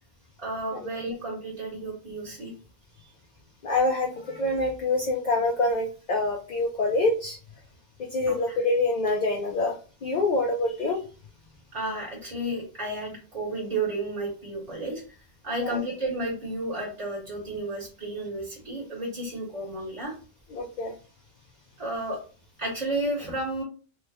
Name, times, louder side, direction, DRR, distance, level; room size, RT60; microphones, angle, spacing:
voice 1, 0.4-2.5 3.0-3.1 8.2-8.6 11.7-15.0 15.4-20.1 21.8-22.2 22.6-23.6, right 2 dB, 40° right, -2 dB, 1.0 m, -32 dB
voice 2, 3.6-7.4 8.1-9.8 10.0-11.0 15.6-15.8 20.5-20.9, left 2 dB, 55° left, 0 dB, 0.6 m, -26 dB
3.2 x 2.0 x 3.3 m, 0.36 s
omnidirectional pair, 1.1 m